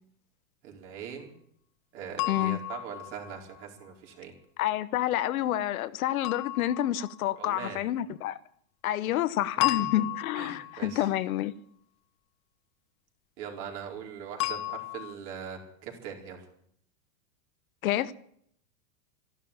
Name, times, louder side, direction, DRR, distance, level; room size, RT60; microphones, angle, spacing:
voice 1, 0.6-1.3 1.9-4.3 7.3-7.8 9.6-10.0 10.4-11.1 13.4-16.4, right 7 dB, 50° right, 4.7 m, -41 dB
sound 1, 2.2-3.6 6.2-7.4 9.6-11.0 14.4-15.1, left 18 dB, 40° left, 1.1 m, -33 dB
voice 2, 2.3-2.6 4.6-8.4 8.8-11.5 17.8-18.1, left 13 dB, 75° left, 1.0 m, -28 dB
14.0 x 12.0 x 8.6 m
supercardioid pair, 150°, 43 cm